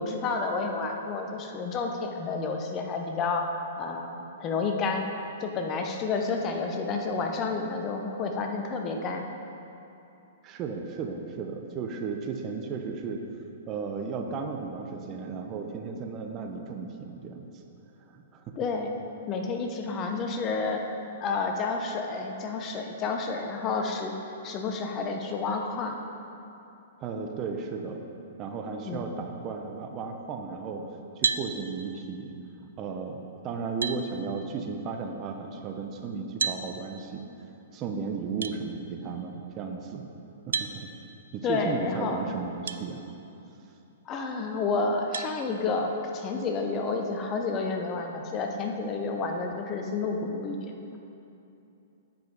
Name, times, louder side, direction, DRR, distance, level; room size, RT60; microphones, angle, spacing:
voice 1, 0.0-3.5 3.8-5.1 5.4-9.2 18.6-20.8 21.2-25.9 28.9-29.1 41.4-42.2 44.1-51.0, left 4 dB, 30° left, 3 dB, 0.8 m, -30 dB
voice 2, 10.4-13.2 13.7-17.5 18.1-18.6 27.0-28.0 28.4-30.9 31.2-32.3 32.8-37.2 37.7-40.1 40.5-40.9 41.3-43.0, right 5 dB, 30° right, 3 dB, 0.8 m, -35 dB
sound 1, 31.2-31.5 33.2-33.3 33.8-34.0 36.4-36.6 38.4-38.6 40.5-40.7 42.7-42.8 43.5-43.6 45.1-45.3, right 6 dB, 80° right, 0.4 m, -29 dB
9.2 x 5.2 x 5.2 m, 2.8 s
hypercardioid pair, 120°, 0 cm